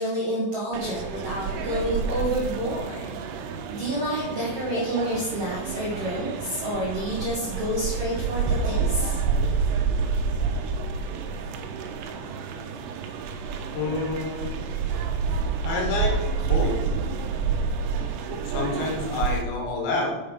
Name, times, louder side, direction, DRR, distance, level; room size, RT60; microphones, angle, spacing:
voice 1, 0.0-3.1 3.7-9.2, equal, 60° right, -5 dB, 1.6 m, -29 dB
sound 1, 0.7-19.4, right 5 dB, 80° right, 2.8 m, -28 dB
voice 2, 13.7-14.5 15.6-16.2 16.4-16.8 18.5-20.2, left 3 dB, 85° left, 0 dB, 4.2 m, -28 dB
7.6 x 6.6 x 5.3 m, 1.2 s
omnidirectional pair, 5.1 m